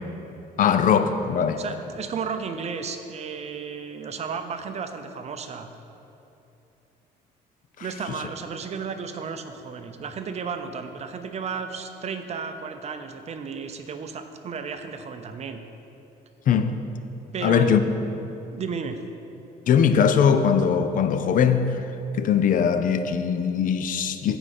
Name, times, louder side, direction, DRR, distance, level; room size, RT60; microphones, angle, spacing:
voice 1, 0.6-1.6 7.8-7.9 16.5-16.8 17.4-17.8 19.7-21.8 22.2-24.4, left 7 dB, 50° left, 9 dB, 0.5 m, -20 dB
voice 2, 1.6-5.7 7.8-15.6 17.3-18.2 18.5-19.0, right 5 dB, 40° right, 7 dB, 0.6 m, -33 dB
14.0 x 5.0 x 4.3 m, 2.9 s
cardioid pair, 110°, 17 cm